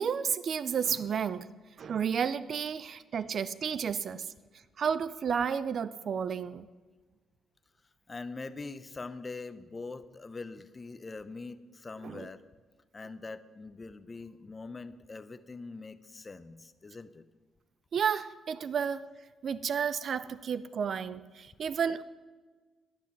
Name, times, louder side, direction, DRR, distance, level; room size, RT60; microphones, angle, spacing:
voice 1, 0.0-1.5 1.8-4.3 4.8-6.7 12.0-12.3 17.9-19.0 19.4-22.0, right 7 dB, 55° right, 0.4 m, -31 dB
voice 2, 8.1-12.4 12.9-17.2, left 3 dB, 30° left, 0.6 m, -43 dB
10.5 x 10.5 x 5.9 m
cardioid pair, 90°, 0 cm